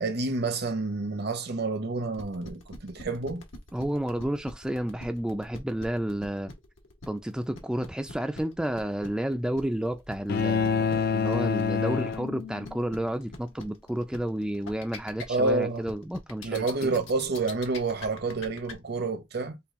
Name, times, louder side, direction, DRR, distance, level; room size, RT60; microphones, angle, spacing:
voice 1, 0.0-3.4 15.3-15.9 16.4-19.6, right 3 dB, 60° right, 0.8 m, -29 dB
sound 1, 2.1-18.7, left 3 dB, 85° left, 1.4 m, -43 dB
voice 2, 3.7-6.5 7.1-17.0, right 1 dB, 5° right, 0.3 m, -31 dB
sound 2, 10.3-12.8, left 6 dB, 55° left, 0.5 m, -27 dB
5.5 x 2.3 x 3.6 m
head